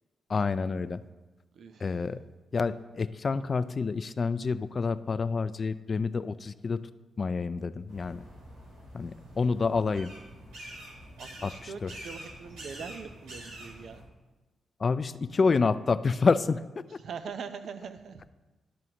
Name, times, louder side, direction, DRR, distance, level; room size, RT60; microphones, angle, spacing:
voice 1, 0.3-1.0 1.8-2.2 2.5-6.8 7.2-8.2 8.9-10.1 11.4-11.5 11.8-11.9 14.8-16.6, left 4 dB, 45° left, 15 dB, 0.4 m, -28 dB
voice 2, 1.5-2.0 11.2-14.0 17.0-18.2, right 6 dB, 70° right, 8 dB, 0.6 m, -42 dB
sound 1, 7.9-14.0, right 1 dB, 85° right, 2.3 m, -46 dB
12.5 x 6.1 x 2.9 m, 1.2 s
supercardioid pair, 50°, 0 cm